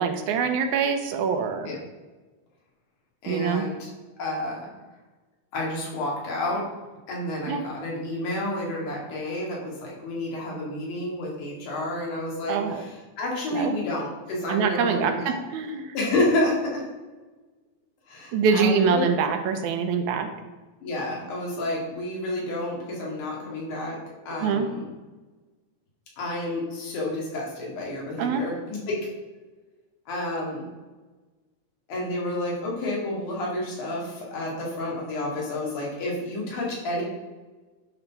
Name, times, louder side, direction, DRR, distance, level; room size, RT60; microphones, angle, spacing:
voice 1, 0.0-1.7 3.3-3.7 7.5-7.6 12.5-12.8 13.5-13.7 14.5-16.0 18.3-20.3 24.4-24.7 28.2-28.4, right 6 dB, 75° right, 6 dB, 2.2 m, -24 dB
voice 2, 3.2-3.9 4.2-4.6 5.5-6.6 7.1-15.4 15.9-16.8 18.1-19.0 20.8-24.0 24.3-24.8 26.2-29.0 30.1-30.6 31.9-37.0, left 1 dB, 85° left, -3 dB, 3.8 m, -30 dB
10.5 x 4.0 x 5.9 m, 1.2 s
omnidirectional pair, 3.5 m